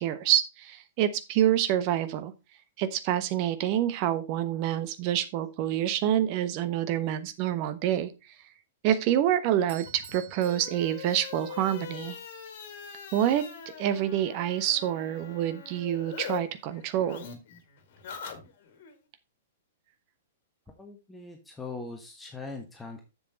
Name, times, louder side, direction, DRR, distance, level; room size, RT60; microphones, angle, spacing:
voice 1, 0.0-2.3 2.8-8.1 8.8-12.2 13.1-13.5 13.8-17.3, right 11 dB, 35° right, 12 dB, 1.1 m, -27 dB
Bell / Doorbell, 9.7-11.8, right 8 dB, 55° right, 1.9 m, -49 dB
sound 1, 9.8-16.4 16.7-18.9, left 8 dB, 45° left, 2.0 m, -43 dB
voice 2, 20.8-23.0, left 3 dB, 5° left, 2 dB, 1.3 m, -41 dB
7.3 x 7.3 x 4.2 m, 0.26 s
figure-of-eight pair, 105°, 0 cm